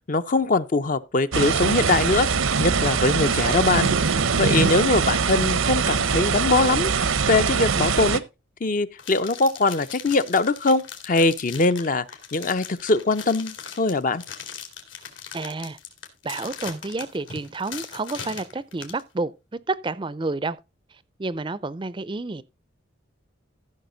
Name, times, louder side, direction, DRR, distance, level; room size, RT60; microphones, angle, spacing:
voice 1, 0.1-2.3 2.6-3.9 4.4-6.9 7.3-8.2 8.6-12.0 12.3-14.2, left 3 dB, 40° left, 0.5 m, -22 dB
sound 1, 1.3-8.2, right 5 dB, 90° right, 0.8 m, -22 dB
sound 2, 9.0-19.0, left 7 dB, 70° left, 2.6 m, -39 dB
voice 2, 15.3-15.8 16.2-19.3 19.7-20.6 21.2-22.4, right 3 dB, 25° right, 0.4 m, -29 dB
14.5 x 6.2 x 3.9 m
head